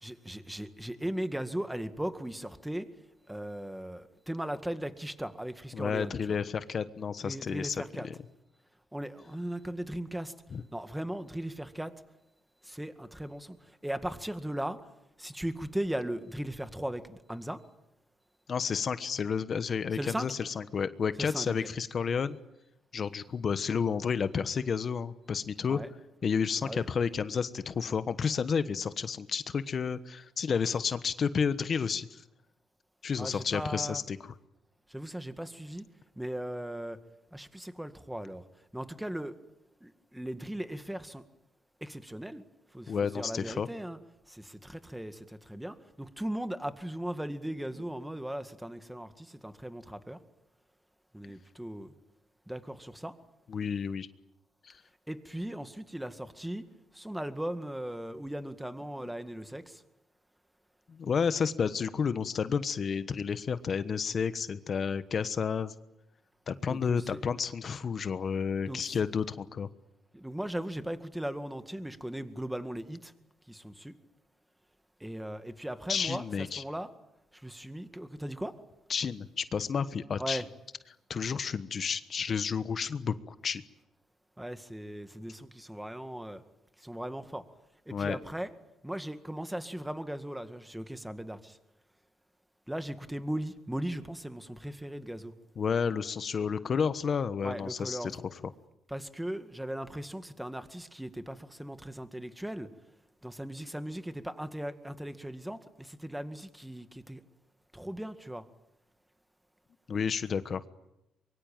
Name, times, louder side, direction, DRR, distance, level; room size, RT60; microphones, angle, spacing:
voice 1, 0.0-2.9 3.3-6.4 7.2-8.1 8.9-10.3 10.7-11.9 12.6-13.6 13.8-14.8 15.2-17.6 19.9-20.3 21.2-21.5 25.7-25.9 26.6-26.9 33.2-34.0 34.9-35.8 36.2-37.0 37.3-38.4 38.7-39.4 39.8-41.2 41.8-42.4 42.7-44.0 44.3-50.2 51.1-51.9 52.5-53.2 55.1-56.6 56.9-59.8 66.7-67.2 68.7-69.0 70.1-73.1 73.5-74.0 75.0-76.2 76.6-76.9 77.4-78.5 80.2-80.5 84.4-86.4 86.8-87.4 87.9-88.5 88.8-91.6 92.7-95.3 97.4-98.1 98.9-102.7 103.2-107.2 107.7-108.5, right 1 dB, 5° right, 9 dB, 2.0 m, -38 dB
voice 2, 5.7-8.1 10.5-10.6 18.5-22.4 22.9-25.8 26.2-32.2 33.0-34.3 42.9-43.7 53.5-54.1 54.6-54.8 60.9-65.7 66.5-69.7 75.9-76.6 78.9-80.4 81.1-83.6 87.9-88.2 95.6-98.4 109.9-110.6, left 6 dB, 50° left, 12 dB, 1.2 m, -31 dB
24.0 x 23.0 x 9.0 m, 0.90 s
cardioid pair, 90°, 0 cm